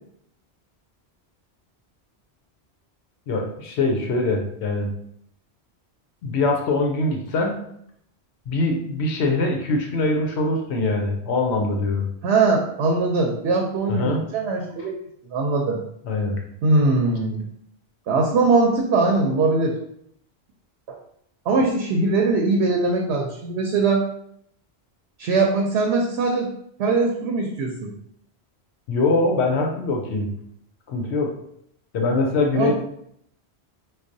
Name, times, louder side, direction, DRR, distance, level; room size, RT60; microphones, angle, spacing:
voice 1, 3.3-4.9 6.2-7.5 8.5-12.1 13.9-14.2 16.1-16.4 28.9-30.3 30.9-31.3 31.9-32.7, left 2 dB, 80° left, 2 dB, 0.9 m, -23 dB
voice 2, 12.2-15.0 15.3-15.8 16.6-17.4 18.1-19.7 21.5-24.0 25.2-26.5 26.8-27.9 32.5-32.7, right 3 dB, 80° right, 0 dB, 0.8 m, -21 dB
4.6 x 2.3 x 2.6 m, 0.71 s
omnidirectional pair, 1.1 m